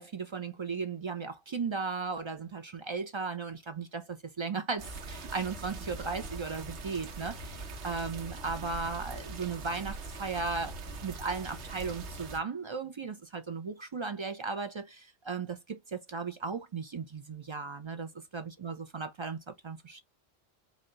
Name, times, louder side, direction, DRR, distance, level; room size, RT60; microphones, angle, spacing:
voice 1, 0.0-10.7 11.0-20.0, right 4 dB, 50° right, 0.3 m, -36 dB
sound 1, 4.8-12.4, right 3 dB, 85° right, 1.1 m, -42 dB
4.2 x 2.1 x 3.7 m
omnidirectional pair, 1.1 m